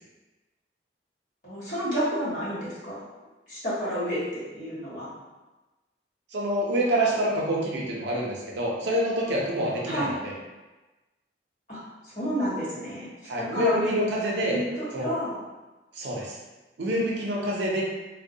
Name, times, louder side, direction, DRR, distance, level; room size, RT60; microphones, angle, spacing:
voice 1, 1.4-3.0 3.5-5.1 9.9-10.1 11.7-13.1 13.4-14.0 14.5-15.4, equal, 45° left, -10 dB, 1.2 m, -30 dB
voice 2, 6.3-10.3 13.2-14.6 14.9-15.1 15.9-16.4 16.8-17.8, right 1 dB, 80° right, -3 dB, 0.6 m, -27 dB
2.2 x 2.1 x 2.6 m, 1.1 s
head